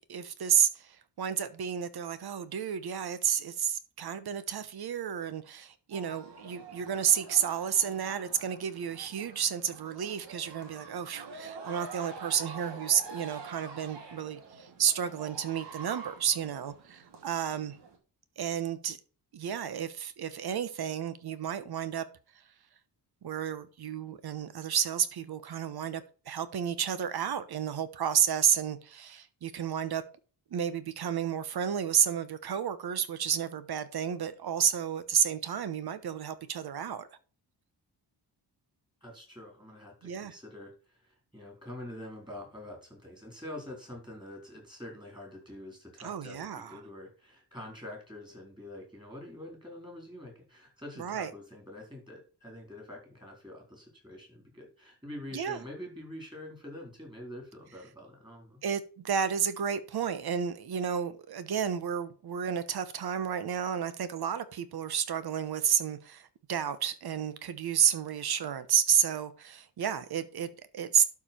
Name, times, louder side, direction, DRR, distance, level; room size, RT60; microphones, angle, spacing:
voice 1, 0.1-17.8 18.4-19.0 19.3-22.0 23.2-30.0 30.5-37.1 40.0-40.3 46.0-46.8 51.0-51.3 55.3-55.6 58.6-71.0, right 8 dB, 60° right, 1.1 m, -31 dB
sound 1, 5.9-18.0, right 4 dB, 85° right, 2.6 m, -47 dB
voice 2, 39.0-58.6, left 1 dB, 10° right, 4.1 m, -46 dB
12.0 x 4.9 x 4.4 m
wide cardioid pair, 160°, 42 cm